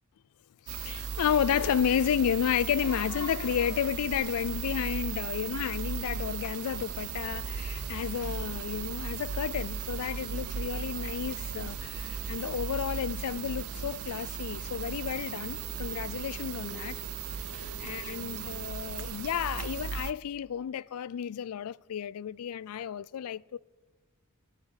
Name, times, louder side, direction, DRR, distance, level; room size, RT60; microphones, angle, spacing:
voice 1, 0.7-17.0 17.3-23.6, left 8 dB, 90° left, 0.4 m, -32 dB
sound 1, 0.7-20.1, right 7 dB, 80° right, 0.5 m, -37 dB
sound 2, 5.8-18.7, right 2 dB, 40° right, 2.5 m, -54 dB
20.5 x 7.4 x 8.1 m
head